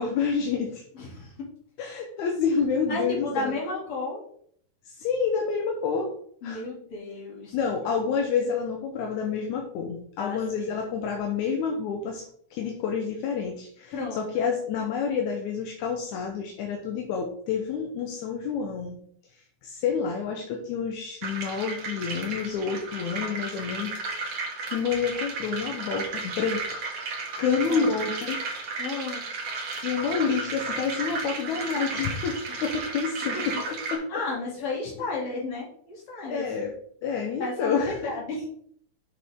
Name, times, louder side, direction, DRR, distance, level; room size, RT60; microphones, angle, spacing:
voice 1, 0.0-0.8 1.8-3.5 4.9-6.1 6.4-6.6 7.5-12.3 12.5-19.0 19.6-24.4 24.7-26.8 27.4-28.4 29.6-34.2 35.0-35.1 36.3-36.7 37.0-38.0, left 6 dB, 70° left, 2 dB, 2.1 m, -28 dB
voice 2, 1.0-1.3 2.9-4.2 6.4-7.6 10.2-10.8 13.9-14.5 27.5-27.9 28.8-29.2 34.1-36.5 37.4-38.5, left 3 dB, 45° left, -4 dB, 3.6 m, -33 dB
sound 1, 21.2-34.0, right 3 dB, 55° right, 2.5 m, -34 dB
8.0 x 6.7 x 3.6 m, 0.63 s
omnidirectional pair, 3.9 m